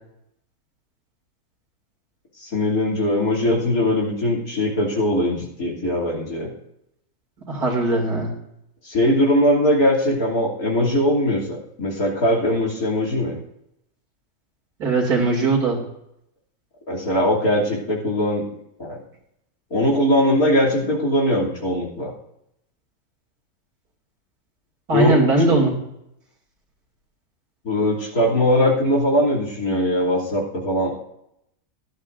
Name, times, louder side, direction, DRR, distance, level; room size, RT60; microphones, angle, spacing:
voice 1, 2.4-6.5 8.8-13.4 16.9-18.4 18.8-19.0 19.7-22.1 24.9-25.2 27.6-30.9, left 1 dB, 70° left, -1 dB, 3.4 m, -20 dB
voice 2, 7.5-8.3 14.8-15.8 24.9-25.7, right 2 dB, 85° right, -1 dB, 3.1 m, -19 dB
16.5 x 12.0 x 2.6 m, 0.79 s
omnidirectional pair, 1.6 m